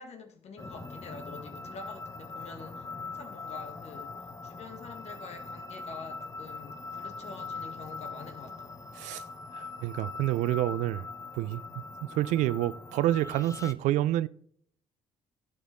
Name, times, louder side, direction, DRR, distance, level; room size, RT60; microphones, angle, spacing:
voice 1, 0.0-8.8, left 4 dB, 55° left, 1.5 m, -46 dB
sound 1, 0.6-13.7, left 4 dB, 25° left, 0.8 m, -42 dB
voice 2, 9.6-11.0 11.4-14.3, right 14 dB, 65° right, 0.4 m, -28 dB
14.5 x 5.0 x 3.6 m
hypercardioid pair, 45°, 13 cm